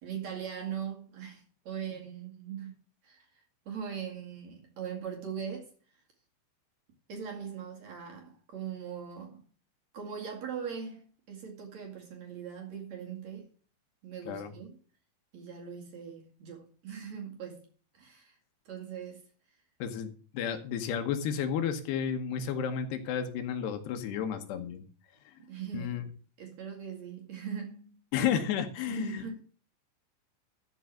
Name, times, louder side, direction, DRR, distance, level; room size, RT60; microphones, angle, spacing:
voice 1, 0.0-2.8 3.0-3.3 3.7-5.7 7.1-9.4 9.9-13.5 14.0-14.8 15.3-17.7 17.9-18.3 18.7-19.2 25.5-26.0 26.4-28.0 28.9-29.4, right 7 dB, 50° right, 2.5 m, -40 dB
voice 2, 19.8-24.8 25.3-25.4 25.7-26.1 28.1-29.3, left 8 dB, 70° left, 2.7 m, -32 dB
13.0 x 4.8 x 7.4 m
omnidirectional pair, 5.7 m